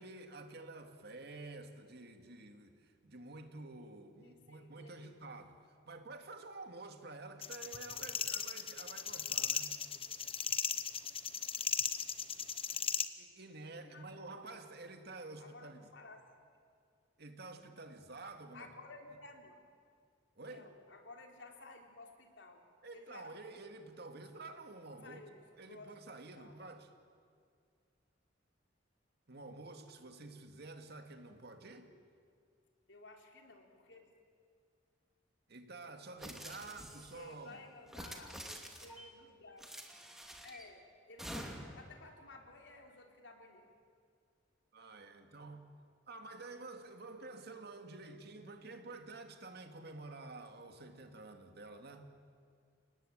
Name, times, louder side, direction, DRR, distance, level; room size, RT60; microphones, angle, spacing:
voice 1, 0.0-9.8 13.1-15.8 17.2-18.7 20.4-20.7 22.8-25.2 25.6-26.9 29.3-31.9 35.5-37.6 44.7-45.7 46.1-52.1, right 2 dB, 60° right, 6 dB, 2.2 m, -50 dB
voice 2, 4.2-5.1 13.8-14.6 15.4-16.2 18.5-19.6 20.5-23.3 25.0-25.9 26.4-26.6 32.9-34.1 36.5-39.7 40.4-43.7, left 3 dB, 80° left, 3 dB, 3.5 m, -55 dB
sound 1, 7.4-13.1, left 7 dB, 30° left, 1.0 m, -36 dB
sound 2, 36.2-37.2 37.9-39.0 39.6-40.6 41.2-41.8, equal, ahead, 2.6 m, -47 dB
30.0 x 19.0 x 8.9 m, 2.3 s
head